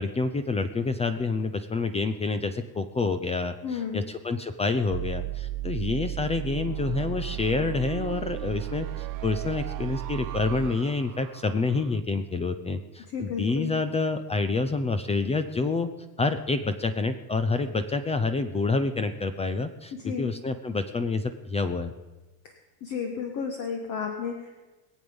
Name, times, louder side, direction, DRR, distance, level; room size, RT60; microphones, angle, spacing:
voice 1, 0.0-15.9 16.2-21.9, left 3 dB, 15° left, 10 dB, 0.5 m, -28 dB
voice 2, 3.6-4.0 13.1-13.7 20.0-20.3 22.4-22.5 22.8-24.6, left 6 dB, 45° left, 4 dB, 1.5 m, -32 dB
sound 1, 4.9-11.9, right 16 dB, 50° right, 0.6 m, -34 dB
22.0 x 8.0 x 5.3 m, 1.2 s
supercardioid pair, 130°, 42 cm